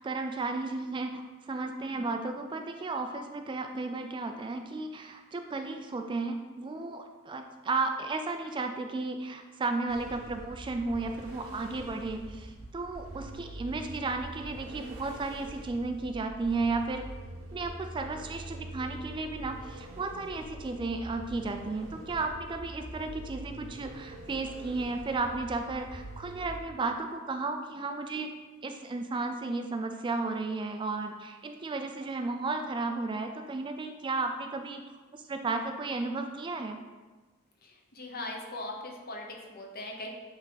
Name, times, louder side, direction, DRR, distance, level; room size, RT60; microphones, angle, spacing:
voice 1, 0.0-17.1 17.5-28.3 28.6-34.8 35.2-36.8, right 3 dB, 25° right, 5 dB, 0.3 m, -34 dB
sound 1, 9.9-26.6, right 1 dB, 65° right, 0.9 m, -44 dB
voice 2, 37.6-40.1, left 2 dB, 45° left, 1 dB, 0.9 m, -40 dB
8.0 x 3.5 x 3.9 m, 1.3 s
head